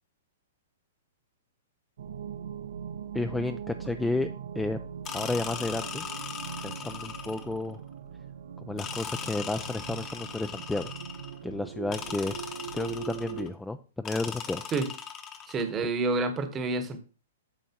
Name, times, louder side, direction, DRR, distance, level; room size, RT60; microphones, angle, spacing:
sound 1, 2.0-13.5, right 8 dB, 70° right, 0.7 m, -40 dB
voice 1, 3.1-4.3 4.6-4.8 5.1-6.1 6.6-7.8 8.6-10.9 11.4-14.6, left 2 dB, 5° left, 0.3 m, -32 dB
sound 2, 5.1-7.6 8.8-11.4 11.9-13.5 14.1-15.7, left 7 dB, 20° left, 0.9 m, -39 dB
voice 2, 15.5-17.0, right 3 dB, 15° right, 1.0 m, -28 dB
9.1 x 6.3 x 2.9 m
hypercardioid pair, 155°, 0 cm